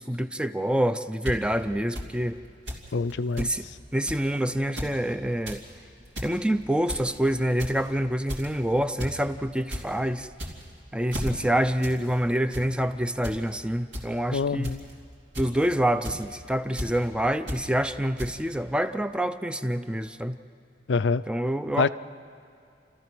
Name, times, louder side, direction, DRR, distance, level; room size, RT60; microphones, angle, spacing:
voice 1, 0.0-2.4 3.4-3.6 3.9-5.6 6.2-10.3 10.9-14.7 15.4-20.4 21.3-21.9, equal, 5° right, 10 dB, 0.5 m, -26 dB
sound 1, 1.3-1.4 2.0-2.1 2.7-2.8 3.1-3.2 3.4-3.5 4.1-4.3 4.6-4.9 5.3-5.6 6.0-6.3 6.9-7.2 7.6-7.9 8.3-8.6 9.0-9.1 9.5-9.8 10.3-10.7 11.1-11.3 11.8-12.0 12.3-12.7 13.2-13.4 13.9-14.0 14.6-14.9 15.3-15.6 16.0-16.2 16.8-16.9 17.5-17.6 18.2-18.3, equal, 75° right, 2.9 m, -33 dB
voice 2, 2.9-3.5 14.3-14.8 20.9-21.2 21.8-21.9, left 4 dB, 80° left, 15 dB, 0.5 m, -25 dB
30.0 x 14.0 x 6.1 m, 2.5 s
head